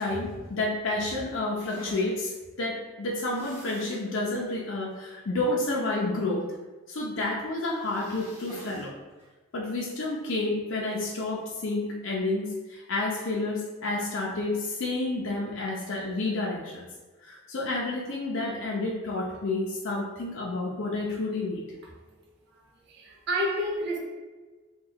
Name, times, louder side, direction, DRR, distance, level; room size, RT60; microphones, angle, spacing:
voice 1, 0.0-6.4 6.9-8.9 9.5-16.9 17.2-21.6, left 2 dB, 70° left, -3 dB, 0.5 m, -30 dB
sound 1, 1.6-2.1 3.3-4.1 4.4-4.5 4.9-5.0 7.7-8.9 9.2-9.3 10.9-11.3, right 1 dB, 35° right, 1.3 m, -46 dB
voice 2, 22.1-24.0, equal, 55° right, -1 dB, 0.7 m, -31 dB
2.9 x 2.3 x 3.9 m, 1.3 s
head